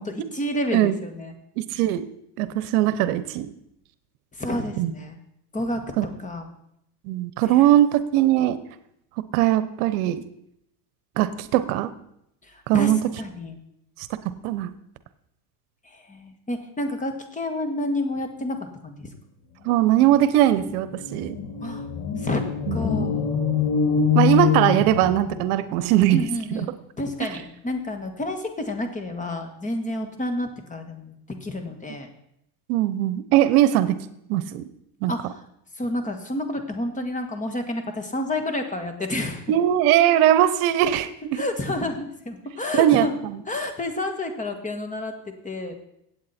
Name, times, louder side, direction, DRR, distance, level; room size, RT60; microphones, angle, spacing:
voice 1, 0.0-1.3 4.4-5.1 5.5-5.8 6.2-6.5 7.5-7.7 12.5-13.6 15.8-19.1 21.6-21.9 22.1-22.4 22.7-23.4 26.1-32.1 35.1-35.3 35.8-39.5 41.3-43.1 43.5-45.1 45.4-45.8, left 1 dB, 15° left, 6 dB, 1.7 m, -30 dB
voice 2, 1.6-2.1 2.4-3.5 4.8-4.9 6.0-6.1 7.0-8.6 9.3-10.2 11.2-11.9 12.7-13.0 14.4-14.7 19.6-21.4 22.7-22.8 24.1-26.2 26.5-26.7 27.2-27.3 29.9-30.1 32.7-34.0 34.3-34.7 35.0-35.1 39.5-41.4 42.8-43.4, right 12 dB, 70° right, 14 dB, 1.0 m, -20 dB
sound 1, 20.1-20.2 20.5-25.6, left 7 dB, 50° left, 2.2 m, -24 dB
16.0 x 8.6 x 4.3 m, 0.77 s
supercardioid pair, 125°, 46 cm